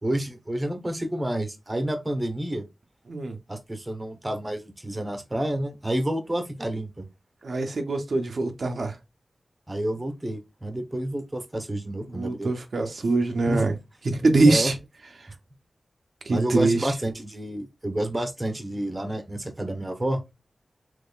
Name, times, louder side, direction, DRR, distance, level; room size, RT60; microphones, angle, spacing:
voice 1, 0.0-2.6 3.5-7.0 9.7-12.5 13.5-13.7 14.4-14.7 16.3-20.2, right 1 dB, 20° right, 0.8 m, -29 dB
voice 2, 7.4-9.0 12.1-13.7 14.1-14.8 16.3-16.9, right 2 dB, 65° right, 0.6 m, -23 dB
3.5 x 3.1 x 2.3 m
wide cardioid pair, 80°, 0 cm